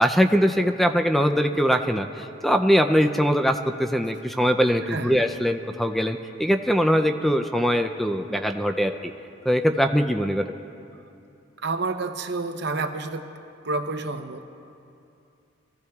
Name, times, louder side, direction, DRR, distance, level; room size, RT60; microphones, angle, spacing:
voice 1, 0.0-9.1 9.5-10.5, equal, ahead, 6 dB, 0.4 m, -22 dB
voice 2, 4.9-5.2 11.6-13.2 13.6-14.5, right 3 dB, 60° right, 7 dB, 0.8 m, -29 dB
23.5 x 15.5 x 2.4 m, 2.6 s
head